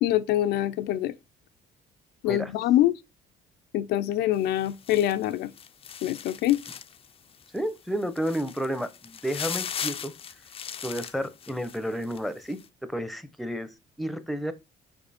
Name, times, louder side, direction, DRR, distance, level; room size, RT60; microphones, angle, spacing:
voice 1, 0.0-1.1 2.2-2.9 3.7-5.5 6.0-6.6, left 13 dB, 85° left, 0.6 m, -24 dB
sound 1, 4.3-7.1 7.4-7.6 8.0-12.2 12.5-12.7, left 8 dB, 35° left, 0.5 m, -38 dB
voice 2, 7.5-10.1 10.8-12.6 12.9-13.7 14.0-14.5, equal, ahead, 0.8 m, -31 dB
5.4 x 5.2 x 4.2 m
cardioid pair, 110°, 17 cm